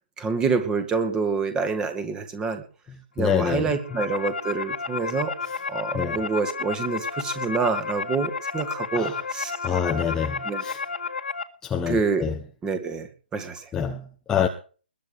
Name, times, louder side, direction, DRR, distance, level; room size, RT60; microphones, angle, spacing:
voice 1, 0.2-2.6 3.2-5.3 5.7-9.5 10.5-10.6 11.9-12.2 12.6-13.7, right 4 dB, 10° right, 2.2 m, -27 dB
voice 2, 3.2-3.8 5.4-5.6 5.9-6.2 8.9-9.2 9.6-10.8 11.6-12.4 13.7-14.5, left 8 dB, 10° left, 1.0 m, -26 dB
sound 1, 3.6-11.4, left 5 dB, 65° left, 1.9 m, -32 dB
21.0 x 8.3 x 5.1 m
figure-of-eight pair, 135°, 6 cm